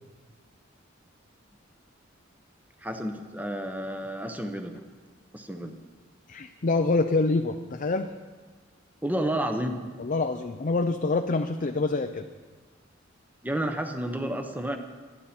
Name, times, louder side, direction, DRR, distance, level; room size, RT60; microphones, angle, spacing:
voice 1, 2.8-4.7 5.3-5.8 9.0-9.8 13.4-14.8, right 1 dB, 10° right, 5 dB, 0.9 m, -30 dB
voice 2, 6.3-8.1 10.0-12.3, left 3 dB, 45° left, 5 dB, 0.6 m, -26 dB
23.0 x 10.0 x 4.4 m, 1.4 s
head